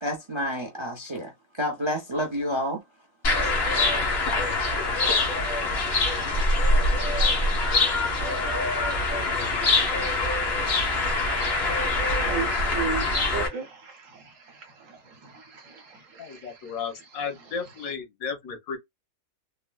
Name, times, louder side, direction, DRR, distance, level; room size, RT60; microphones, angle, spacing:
voice 1, 0.0-2.8, equal, 30° right, 0.5 m, -29 dB
sound 1, 3.2-13.5, left 2 dB, 50° left, 1.3 m, -24 dB
voice 2, 12.2-16.5, right 6 dB, 65° right, 1.3 m, -36 dB
voice 3, 16.2-18.8, left 6 dB, 80° left, 1.4 m, -34 dB
3.6 x 2.1 x 2.3 m
omnidirectional pair, 1.5 m